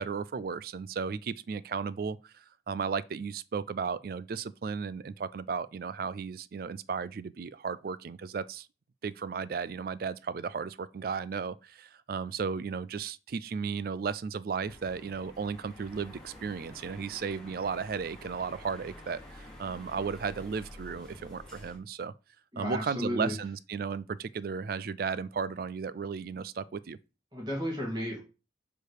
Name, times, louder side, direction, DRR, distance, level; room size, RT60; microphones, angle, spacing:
voice 1, 0.0-8.7 9.0-22.1 22.6-27.0, right 5 dB, 50° right, 0.3 m, -35 dB
sound 1, 14.6-21.8, left 1 dB, 5° left, 1.6 m, -49 dB
voice 2, 22.5-23.3 27.3-28.2, equal, 20° right, 2.2 m, -33 dB
4.9 x 4.7 x 4.7 m
head